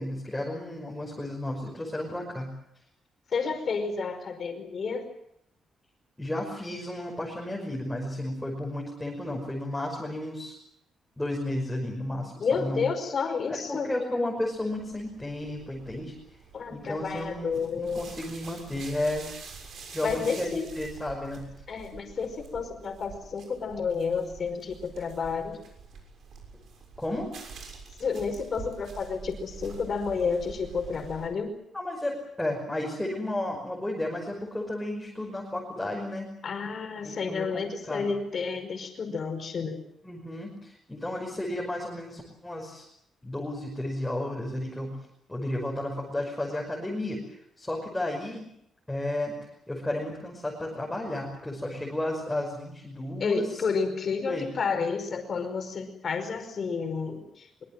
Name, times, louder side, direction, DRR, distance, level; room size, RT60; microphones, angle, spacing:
voice 1, 0.0-2.5 6.2-10.6 11.2-12.9 13.5-16.1 16.7-19.3 19.9-21.4 27.0-27.3 31.7-36.3 37.0-38.1 40.0-42.8 43.2-44.9 45.3-48.5 48.9-49.4 49.7-53.6 54.3-54.5, left 1 dB, 5° left, -2 dB, 5.6 m, -33 dB
voice 2, 3.3-5.1 12.4-13.9 16.5-18.1 20.0-20.7 21.7-25.6 28.0-31.6 36.4-39.9 53.2-57.6, left 5 dB, 40° left, 6 dB, 5.1 m, -30 dB
sound 1, 14.5-31.3, right 5 dB, 55° right, 6.7 m, -46 dB
24.0 x 24.0 x 7.7 m, 0.75 s
wide cardioid pair, 180°, 0 cm